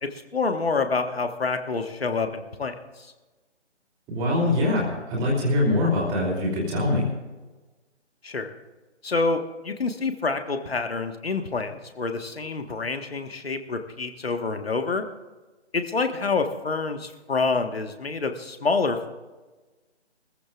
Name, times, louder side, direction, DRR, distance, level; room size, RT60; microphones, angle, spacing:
voice 1, 0.0-2.7 8.2-8.5 9.0-15.0 15.7-19.1, left 4 dB, 60° left, 7 dB, 1.5 m, -27 dB
voice 2, 4.1-7.1, left 2 dB, 10° right, -3 dB, 2.9 m, -23 dB
22.5 x 15.0 x 2.4 m, 1.2 s
figure-of-eight pair, 145°, 35 cm